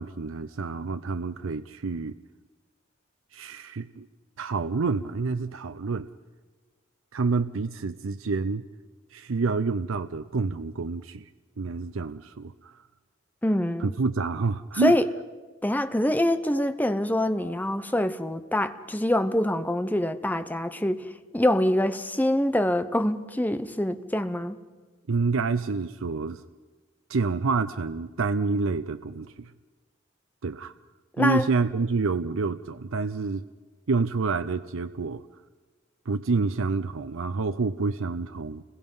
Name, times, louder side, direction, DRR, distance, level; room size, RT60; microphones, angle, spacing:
voice 1, 0.0-2.2 3.3-4.1 4.4-6.1 7.1-8.7 9.1-11.3 11.6-12.8 13.8-14.9 25.1-26.4 27.1-29.5 30.4-30.7 31.2-33.5 33.9-35.2 36.1-38.6, right 4 dB, 80° right, 11 dB, 0.6 m, -28 dB
voice 2, 13.4-14.0 14.8-15.1 15.6-24.6 31.2-31.4, left 1 dB, 10° left, 10 dB, 0.7 m, -25 dB
29.5 x 21.5 x 5.5 m, 1.3 s
head